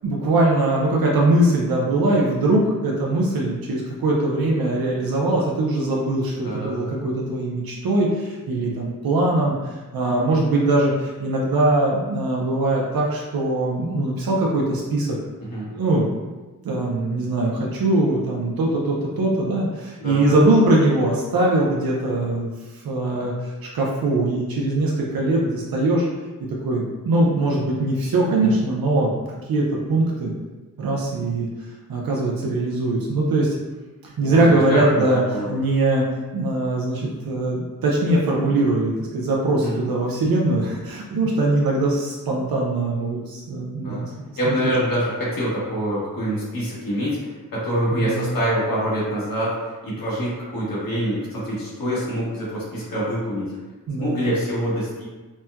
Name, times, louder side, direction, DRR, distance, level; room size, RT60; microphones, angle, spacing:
voice 1, 0.0-15.2 15.7-16.1 16.6-26.1 26.4-29.1 29.5-30.3 30.8-31.5 31.9-33.6 34.0-36.0 36.3-44.1 44.4-44.6 47.9-48.3 53.9-54.3, right 2 dB, 80° right, -3 dB, 0.6 m, -21 dB
voice 2, 6.4-6.9 15.5-15.7 20.0-20.4 28.4-28.5 34.2-35.0 35.3-35.6 39.6-39.8 43.8-44.0 44.4-47.2 47.5-53.5 54.0-55.0, equal, 75° left, -7 dB, 1.2 m, -25 dB
4.1 x 2.2 x 2.3 m, 1.2 s
wide cardioid pair, 145°, 35 cm